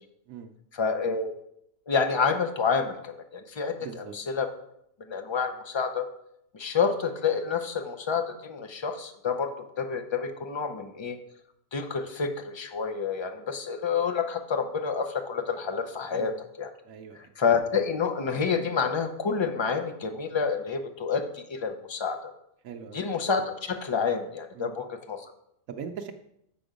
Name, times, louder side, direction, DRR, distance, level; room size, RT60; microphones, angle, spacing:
voice 1, 0.7-1.3 1.9-4.5 5.1-6.0 6.5-9.5 9.8-11.2 11.7-16.7 17.4-22.3 22.9-25.3, left 5 dB, 30° left, 7 dB, 0.5 m, -28 dB
voice 2, 3.8-4.1 16.1-16.4 16.8-17.3 22.6-23.0 24.5-24.7 25.7-26.1, right 7 dB, 90° right, 3 dB, 1.1 m, -40 dB
6.9 x 6.0 x 5.1 m, 0.76 s
omnidirectional pair, 1.4 m